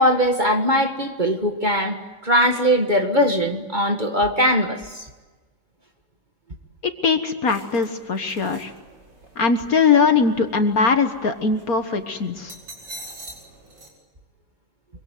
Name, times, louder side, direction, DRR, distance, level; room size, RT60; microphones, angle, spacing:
voice 1, 0.0-5.1, equal, 25° right, 5 dB, 1.8 m, -20 dB
voice 2, 7.0-8.7 9.4-12.5, left 5 dB, 55° left, 8 dB, 1.8 m, -20 dB
sound 1, 7.5-13.9, right 1 dB, 65° right, 5.8 m, -45 dB
25.0 x 24.0 x 9.4 m, 1.3 s
omnidirectional pair, 2.0 m